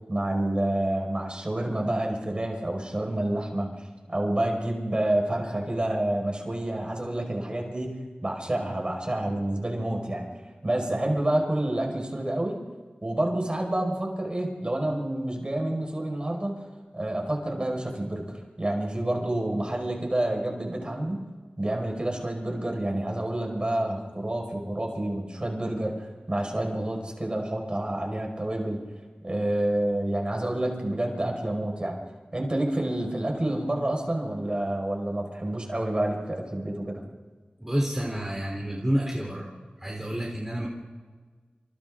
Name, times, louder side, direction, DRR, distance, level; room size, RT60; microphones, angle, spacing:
voice 1, 0.1-8.0 8.2-10.2 10.6-12.6 13.0-16.5 16.9-21.2 21.6-28.8 29.2-32.0 32.3-37.0, right 1 dB, 30° right, 1 dB, 5.4 m, -28 dB
voice 2, 37.6-39.5 39.8-40.7, equal, 10° right, -2 dB, 3.7 m, -29 dB
28.0 x 27.5 x 3.8 m, 1.5 s
wide cardioid pair, 75°, 3 cm